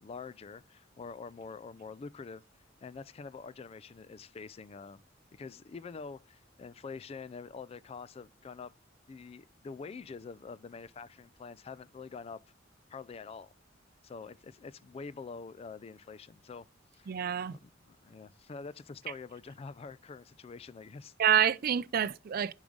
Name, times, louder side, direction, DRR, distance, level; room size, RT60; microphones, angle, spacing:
voice 1, 0.0-2.4 2.8-5.0 5.3-8.7 9.1-12.4 12.9-13.5 14.0-16.7 16.9-17.2 17.5-21.1, left 4 dB, 30° left, 0.3 m, -46 dB
voice 2, 17.1-17.6 21.2-22.5, right 9 dB, 55° right, 0.4 m, -27 dB
7.0 x 4.9 x 3.8 m
head